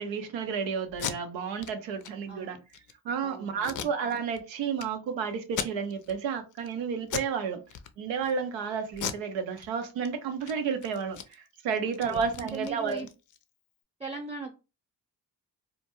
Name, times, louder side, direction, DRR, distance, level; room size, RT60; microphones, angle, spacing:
voice 1, 0.0-2.6 3.0-7.6 8.0-13.1, right 6 dB, 90° right, 0.6 m, -31 dB
Packing tape duct tape, 0.9-1.1 1.6-1.7 2.0-2.1 2.5-2.9 3.6-4.4 4.8-4.9 5.4-6.1 6.5-6.7 7.1-7.4 7.7-8.3 8.9-10.1 10.4-10.5 10.8-13.4, left 8 dB, 45° left, 0.4 m, -37 dB
voice 2, 2.3-2.6 3.2-3.9 11.8-13.1 14.0-14.5, right 3 dB, 15° right, 0.7 m, -40 dB
2.2 x 2.2 x 2.9 m
supercardioid pair, 45°, 44 cm